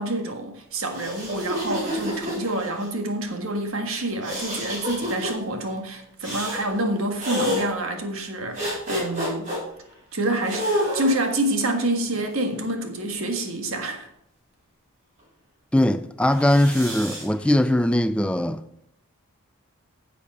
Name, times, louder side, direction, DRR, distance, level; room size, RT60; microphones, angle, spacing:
voice 1, 0.0-9.5 10.1-14.1, right 1 dB, 65° right, 1.6 m, -27 dB
sound 1, 0.8-2.9 4.2-5.3 6.2-6.6 7.2-7.6 8.5-9.6 10.4-11.3 12.1-13.2 16.3-17.2, equal, 35° right, 4.1 m, -29 dB
voice 2, 15.7-18.6, left 1 dB, 5° left, 0.4 m, -20 dB
10.5 x 7.0 x 4.8 m
head